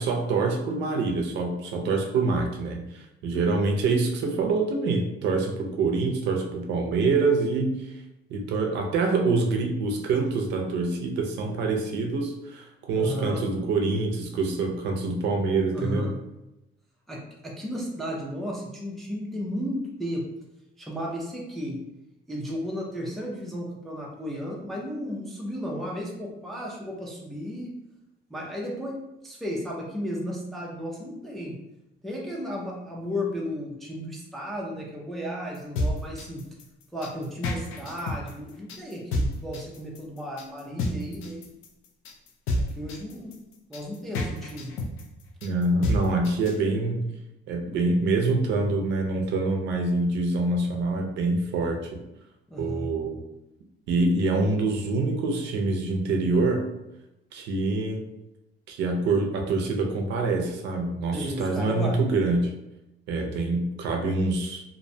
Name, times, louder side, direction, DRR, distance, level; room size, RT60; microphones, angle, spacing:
voice 1, 0.0-7.9 8.3-16.1 45.4-47.1 47.5-52.0 52.6-53.2 53.9-56.6 57.3-58.0 58.7-62.5 63.1-64.6, right 3 dB, 60° right, 2 dB, 0.4 m, -25 dB
voice 2, 12.9-13.5 15.7-16.2 17.1-20.3 20.8-21.8 22.3-27.7 28.3-31.6 32.0-36.5 36.9-41.4 42.7-43.3 43.7-44.7 52.5-52.9 61.1-62.0, equal, ahead, -3 dB, 0.3 m, -34 dB
sound 1, 35.5-46.6, left 1 dB, 85° left, 0.4 m, -30 dB
2.4 x 2.1 x 2.6 m, 0.92 s
cardioid pair, 165°, 20 cm